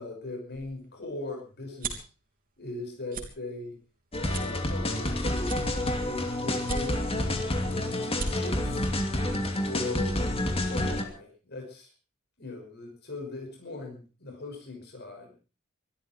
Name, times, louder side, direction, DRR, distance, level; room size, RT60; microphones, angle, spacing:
voice 1, 0.0-2.0 2.6-3.8 4.3-5.7 6.0-7.0 8.3-8.8 9.6-10.2 10.7-11.9 12.4-15.3, left 2 dB, 50° left, 2 dB, 5.9 m, -39 dB
sound 1, 0.5-2.1 2.6-2.8 3.1-3.3 3.8-3.9 4.3-5.1 5.4-6.1 6.6-7.2 7.7-7.8 8.0-8.3, right 3 dB, 40° right, 3.5 m, -36 dB
sound 2, 4.1-11.0, left 1 dB, 30° left, 2.6 m, -29 dB
23.0 x 13.0 x 4.5 m, 0.36 s
head